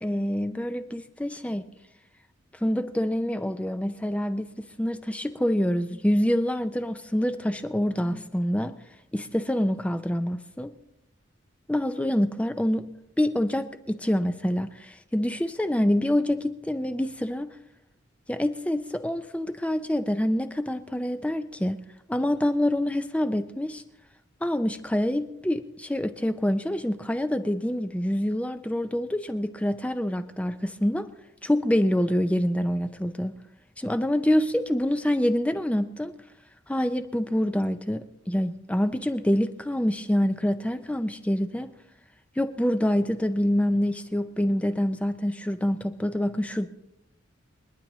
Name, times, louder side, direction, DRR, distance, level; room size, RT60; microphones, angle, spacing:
voice 1, 0.0-1.6 2.6-8.8 9.1-10.7 11.7-12.9 13.2-17.5 18.3-21.8 22.1-23.8 24.4-31.1 31.4-33.3 33.8-36.1 36.7-41.7 42.4-46.7, left 1 dB, 5° left, 9 dB, 0.4 m, -26 dB
29.0 x 9.9 x 3.1 m, 0.89 s
head